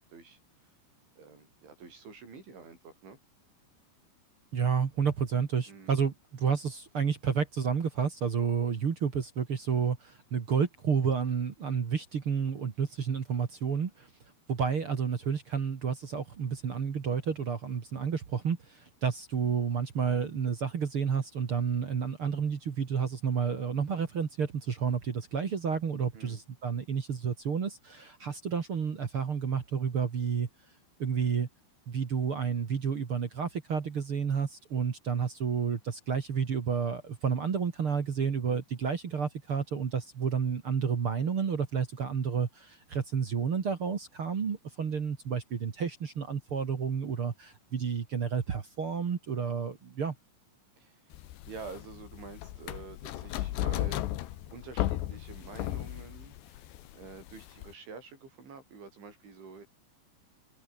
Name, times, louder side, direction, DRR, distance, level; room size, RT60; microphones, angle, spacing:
voice 1, 1.2-3.2 5.7-5.9 26.1-26.4 50.8-51.2 51.5-54.1 54.5-59.7, right 5 dB, 85° right, 10.5 m, -48 dB
voice 2, 4.5-14.1 14.5-30.5 31.0-31.5 31.9-50.1, right 6 dB, 45° right, 1.9 m, -30 dB
sound 1, 51.1-57.7, left 14 dB, 75° left, 3.4 m, -35 dB
omnidirectional pair, 5.2 m